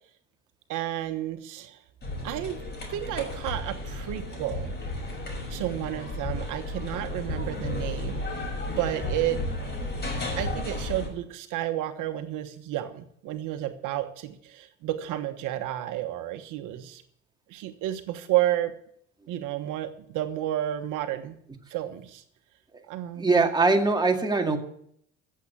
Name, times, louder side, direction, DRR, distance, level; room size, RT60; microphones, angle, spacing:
voice 1, 0.7-1.8 2.2-2.6 2.9-4.7 5.5-8.2 8.8-9.4 10.4-17.0 17.5-18.7 19.3-21.3 21.7-22.2 22.9-23.5, right 13 dB, 65° right, 8 dB, 1.3 m, -31 dB
sound 1, 2.0-11.1, left 1 dB, 30° left, 6.3 m, -33 dB
voice 2, 23.2-24.6, right 3 dB, 15° right, 3 dB, 2.1 m, -22 dB
14.5 x 7.7 x 8.5 m, 0.68 s
supercardioid pair, 95°, 33 cm